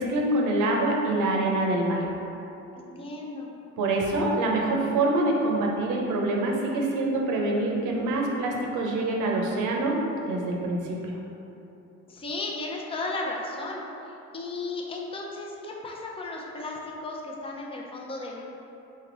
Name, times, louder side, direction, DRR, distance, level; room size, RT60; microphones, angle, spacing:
voice 1, 0.0-2.1 3.8-10.0 10.2-11.2, right 2 dB, 80° right, 0 dB, 0.8 m, -25 dB
voice 2, 2.8-3.5 12.1-13.8 14.3-18.4, left 2 dB, 20° left, -2 dB, 0.6 m, -35 dB
3.9 x 3.4 x 3.9 m, 2.9 s
cardioid pair, 90°, 30 cm